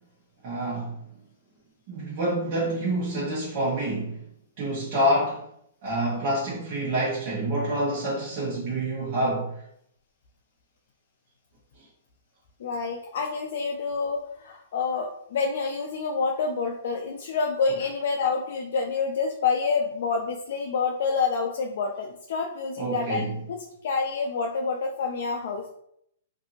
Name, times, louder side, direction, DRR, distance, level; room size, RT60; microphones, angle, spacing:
voice 1, 0.4-1.0 1.9-4.2 4.6-5.4 5.8-9.5 22.8-23.3, right 1 dB, 45° right, -7 dB, 1.0 m, -27 dB
voice 2, 12.6-25.7, left 5 dB, 65° left, 2 dB, 0.4 m, -28 dB
2.7 x 2.6 x 2.6 m, 0.72 s
hypercardioid pair, 130°, 0 cm